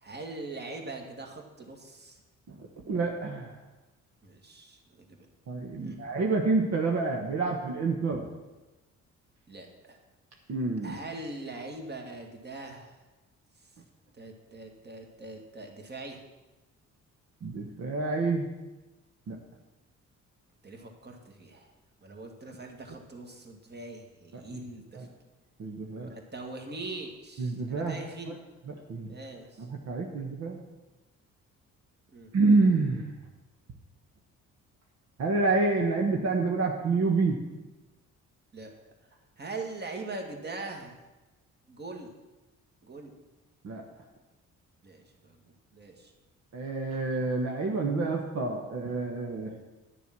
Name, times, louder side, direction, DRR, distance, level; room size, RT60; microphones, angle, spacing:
voice 1, 0.0-2.2 4.2-5.3 5.8-6.0 9.5-10.0 10.8-13.0 14.1-16.2 20.6-21.7 22.0-25.1 25.9-28.4 29.1-29.7 32.1-32.3 38.5-38.7 39.4-41.0 41.7-42.1 42.8-43.1 44.8-45.4 45.7-46.1, right 2 dB, 35° right, 2 dB, 2.1 m, -42 dB
voice 2, 2.9-3.5 5.5-8.2 10.5-11.0 17.4-18.5 19.3-19.4 24.3-24.6 24.9-25.1 25.6-26.1 27.4-28.0 28.7-29.1 29.6-30.6 32.3-33.1 35.2-37.4 43.6-43.8 46.5-49.5, right 3 dB, 60° right, 1 dB, 1.4 m, -28 dB
11.5 x 6.9 x 6.1 m, 1.1 s
cardioid pair, 90°, 30 cm